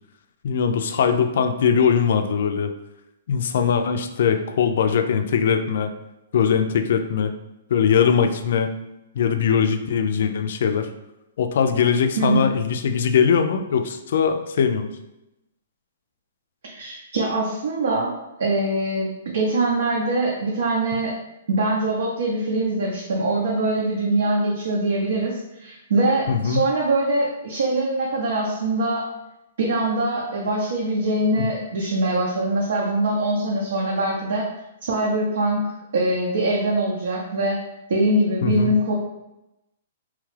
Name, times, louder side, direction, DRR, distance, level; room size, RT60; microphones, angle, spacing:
voice 1, 0.4-2.7 3.3-5.9 6.3-7.3 7.7-8.7 9.2-10.9 11.4-14.9 26.3-26.6 31.4-31.5 38.4-38.7, left 7 dB, 65° left, 7 dB, 0.3 m, -21 dB
voice 2, 12.2-12.5 16.6-21.1 21.5-29.0 29.6-34.5 34.8-35.6 35.9-37.6 37.9-38.9, right 2 dB, 75° right, -3 dB, 0.7 m, -23 dB
3.1 x 2.3 x 3.2 m, 0.93 s
hypercardioid pair, 140°, 0 cm